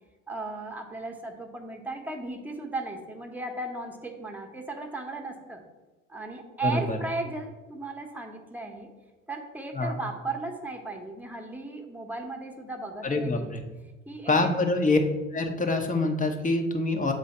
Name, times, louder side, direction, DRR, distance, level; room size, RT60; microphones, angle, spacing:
voice 1, 0.3-5.6 6.1-8.9 9.3-13.5 14.1-14.5, right 3 dB, 5° right, 2 dB, 1.1 m, -36 dB
voice 2, 6.6-7.0 9.7-9.9 13.0-13.6 14.3-15.0 15.3-17.1, left 2 dB, 20° left, 4 dB, 1.0 m, -25 dB
7.8 x 3.3 x 4.2 m, 1.2 s
figure-of-eight pair, 60°, 38 cm